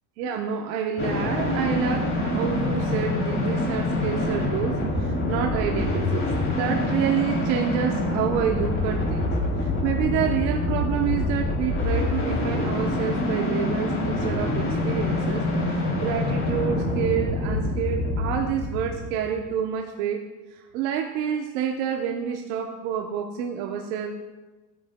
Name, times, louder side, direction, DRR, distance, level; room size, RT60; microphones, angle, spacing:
voice 1, 0.2-9.3 9.6-24.1, right 8 dB, 75° right, 3 dB, 1.0 m, -28 dB
sound 1, 1.0-19.5, left 2 dB, 25° left, 3.0 m, -26 dB
13.0 x 9.6 x 2.2 m, 1.2 s
supercardioid pair, 100°, 50 cm